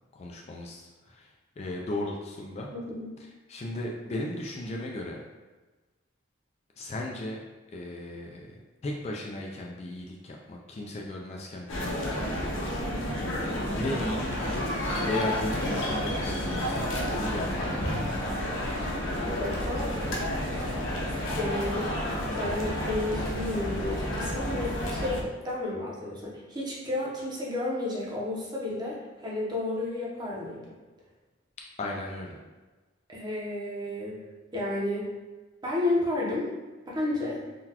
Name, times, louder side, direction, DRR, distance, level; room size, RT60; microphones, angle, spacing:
voice 1, 0.1-1.3 1.6-2.7 3.5-5.2 6.8-7.4 7.7-8.5 8.8-12.5 13.7-17.9 31.8-32.4, left 1 dB, 30° left, 0 dB, 0.3 m, -35 dB
voice 2, 2.7-3.1 19.4-20.0 20.3-20.7 21.4-22.0 22.4-30.6 33.1-34.2 34.5-35.1 35.6-36.5 36.9-37.4, left 2 dB, 20° right, -5 dB, 0.7 m, -32 dB
sound 1, 11.7-25.2, left 1 dB, 70° left, 0.6 m, -30 dB
sound 2, 12.8-19.4, equal, 65° right, 1.4 m, -48 dB
3.8 x 2.2 x 2.8 m, 1.2 s
head